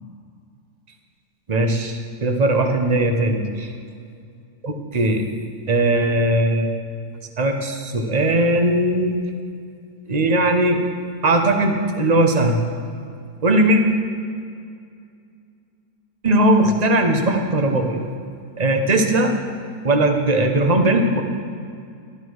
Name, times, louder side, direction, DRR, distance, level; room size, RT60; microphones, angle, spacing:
voice 1, 1.5-3.7 4.6-5.2 5.7-6.8 7.4-9.2 10.1-10.8 11.2-12.6 13.4-13.8 16.2-18.1 18.6-19.3 19.8-21.2, right 1 dB, 30° right, 4 dB, 1.0 m, -19 dB
12.5 x 12.0 x 4.7 m, 2.3 s
omnidirectional pair, 1.8 m